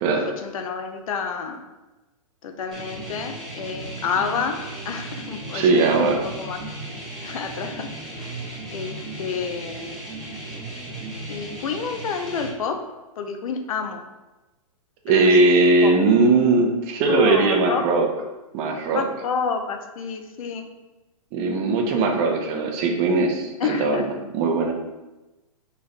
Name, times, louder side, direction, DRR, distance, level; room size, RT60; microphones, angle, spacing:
voice 1, 0.2-1.6 2.4-6.6 7.2-7.9 8.2-8.3 8.7-10.0 11.3-12.8 13.2-14.0 15.1-15.3 15.8-15.9 17.1-17.8 18.9-20.7 23.6-24.1, left 5 dB, 70° left, 5 dB, 0.5 m, -29 dB
sound 1, 2.7-12.5, right 2 dB, ahead, 1.2 m, -36 dB
voice 2, 5.5-6.2 15.0-18.1 18.5-19.1 21.3-24.7, right 3 dB, 30° right, 3 dB, 0.5 m, -19 dB
3.1 x 2.5 x 4.1 m, 1.1 s
hypercardioid pair, 145°, 19 cm